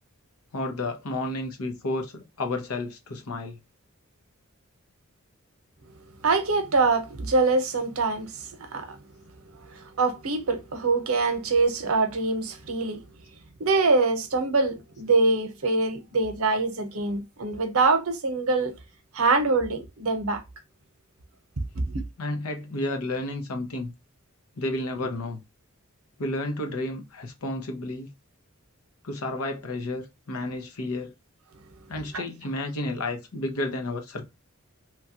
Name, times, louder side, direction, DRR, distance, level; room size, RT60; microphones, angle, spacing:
voice 1, 0.5-3.6 22.2-23.9 24.6-25.4 26.2-28.1 29.0-31.1 31.9-34.3, left 2 dB, 90° left, 0.8 m, -31 dB
voice 2, 6.2-9.0 9.7-13.0 13.6-18.7 19.1-20.4 21.6-22.0, right 3 dB, 80° right, 0.8 m, -24 dB
3.0 x 2.3 x 2.7 m
head